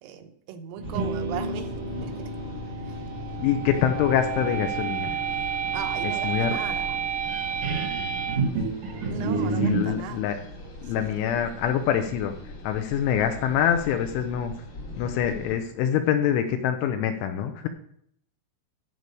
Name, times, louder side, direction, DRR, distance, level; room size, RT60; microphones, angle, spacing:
voice 1, 0.0-1.7 2.0-2.2 2.8-3.0 5.7-7.0 9.1-10.2 10.8-11.1, right 9 dB, 80° right, 6 dB, 3.6 m, -37 dB
sound 1, 0.8-15.5, left 1 dB, 55° left, 1.4 m, -41 dB
sound 2, 0.8-9.9, right 4 dB, 65° right, 2.1 m, -29 dB
voice 2, 3.4-5.2 6.0-6.6 8.0-8.4 9.1-10.4 10.8-12.3 12.6-14.5 15.0-17.7, left 9 dB, 80° left, 6 dB, 3.0 m, -25 dB
14.0 x 4.8 x 6.8 m, 0.68 s
omnidirectional pair, 5.9 m